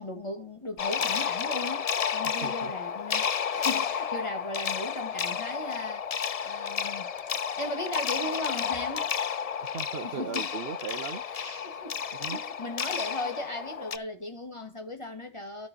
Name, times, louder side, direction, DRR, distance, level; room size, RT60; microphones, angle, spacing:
voice 1, 0.0-6.1 6.4-7.1 7.6-9.1 10.0-10.5 11.3-15.7, left 1 dB, 25° left, 1.9 m, -37 dB
sound 1, 0.8-14.0, left 7 dB, 50° left, 0.5 m, -31 dB
voice 2, 2.4-2.7 9.6-11.7 12.2-12.4, right 6 dB, 65° right, 1.0 m, -38 dB
12.5 x 4.4 x 5.3 m
omnidirectional pair, 1.1 m